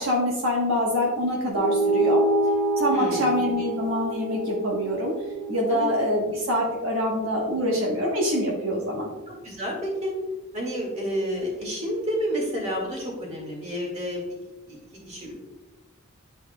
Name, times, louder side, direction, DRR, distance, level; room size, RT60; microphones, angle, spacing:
voice 1, 0.0-2.2 2.8-5.1 5.5-9.1, left 1 dB, 65° right, -3 dB, 1.2 m, -25 dB
sound 1, 1.5-6.3, right 2 dB, 20° left, 0.6 m, -26 dB
voice 2, 2.9-3.3 5.7-5.9 9.3-10.1 10.5-14.2 14.7-14.8 15.1-15.3, equal, 30° right, -2 dB, 1.9 m, -30 dB
10.0 x 4.4 x 2.3 m, 1.1 s
head